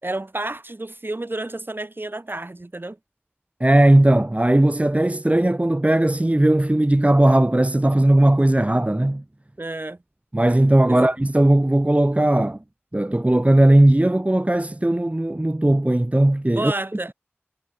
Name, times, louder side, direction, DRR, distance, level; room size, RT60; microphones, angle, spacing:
voice 1, 0.0-3.0 9.6-10.0 10.9-11.1 16.5-17.1, right 2 dB, 55° right, 6.2 m, -30 dB
voice 2, 3.6-9.2 10.3-12.6 12.9-16.7, right 1 dB, 30° right, 1.5 m, -17 dB
wide cardioid pair, 45°, 4 cm